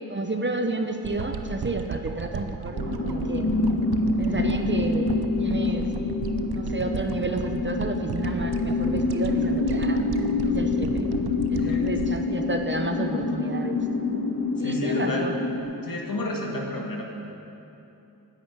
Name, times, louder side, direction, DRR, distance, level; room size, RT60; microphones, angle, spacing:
voice 1, 0.1-3.5 4.2-5.1 5.4-5.9 6.5-10.0 10.4-11.1 11.5-13.8 14.6-15.4, right 2 dB, 30° right, 5 dB, 1.0 m, -31 dB
sound 1, 1.0-13.4 13.8-13.9, right 7 dB, 90° right, 0.7 m, -35 dB
sound 2, 2.7-15.6, left 3 dB, 35° left, 1.5 m, -26 dB
voice 2, 11.6-12.1 14.6-15.3 15.8-17.1, left 1 dB, 60° left, 0 dB, 2.2 m, -31 dB
9.7 x 8.6 x 9.6 m, 2.8 s
wide cardioid pair, 65°, 37 cm